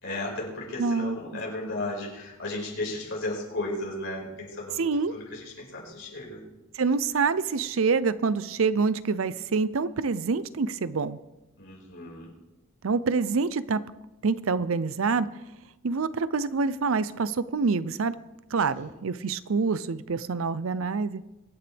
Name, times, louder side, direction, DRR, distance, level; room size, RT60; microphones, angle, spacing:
voice 1, 0.0-6.4 11.6-12.3 18.7-18.8, left 2 dB, 60° left, -3 dB, 5.3 m, -35 dB
voice 2, 0.8-1.2 4.8-5.1 6.7-11.2 12.8-13.8 14.2-15.3 15.8-18.2 18.5-21.2, right 4 dB, 75° right, 16 dB, 0.6 m, -26 dB
23.5 x 9.7 x 3.5 m, 1.0 s
head